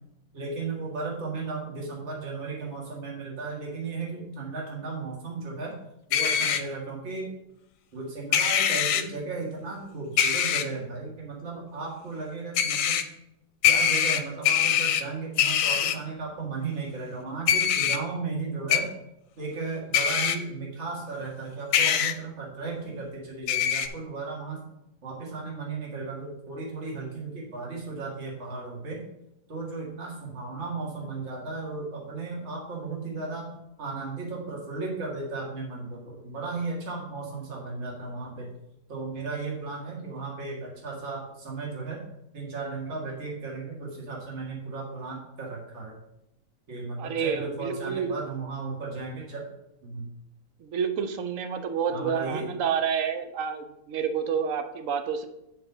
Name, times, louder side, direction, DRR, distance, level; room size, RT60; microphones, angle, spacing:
voice 1, 0.3-5.8 6.1-7.3 7.9-13.1 13.6-18.9 19.4-24.6 25.0-29.0 29.5-33.5 33.8-38.5 38.9-42.0 42.3-46.0 46.7-49.5 49.8-50.0 51.9-52.5, right 3 dB, 40° right, -3 dB, 2.1 m, -35 dB
sound 1, 6.1-6.6 8.3-9.0 10.2-10.6 12.6-13.0 13.6-15.0 15.4-15.9 17.5-18.0 18.7-18.8 19.9-20.4 21.7-22.1 23.5-23.9, left 8 dB, 70° left, 1.2 m, -23 dB
voice 2, 47.0-48.2 50.6-55.3, right 7 dB, 60° right, 8 dB, 0.9 m, -29 dB
8.7 x 4.7 x 5.5 m, 0.86 s
omnidirectional pair, 1.9 m